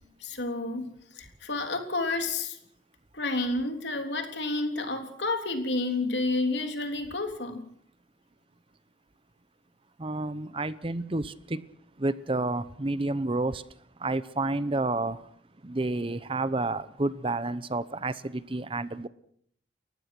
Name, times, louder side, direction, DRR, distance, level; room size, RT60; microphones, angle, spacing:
voice 1, 0.2-2.6 3.1-7.6, left 2 dB, 75° left, 3.5 m, -30 dB
voice 2, 10.0-11.6 12.0-13.6 14.0-15.2 15.6-19.1, right 2 dB, 30° right, 0.8 m, -30 dB
30.0 x 15.5 x 6.1 m
head